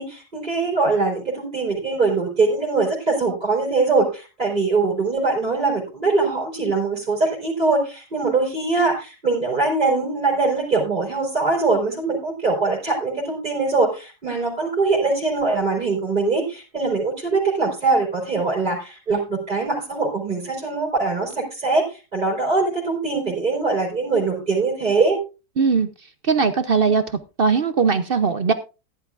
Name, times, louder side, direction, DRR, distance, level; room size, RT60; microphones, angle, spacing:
voice 1, 0.0-25.2, right 3 dB, 25° right, -3 dB, 4.2 m, -22 dB
voice 2, 25.6-25.9 26.2-27.0 27.4-28.5, right 5 dB, 60° right, 11 dB, 0.6 m, -19 dB
15.0 x 11.5 x 2.5 m, 0.30 s
omnidirectional pair, 1.8 m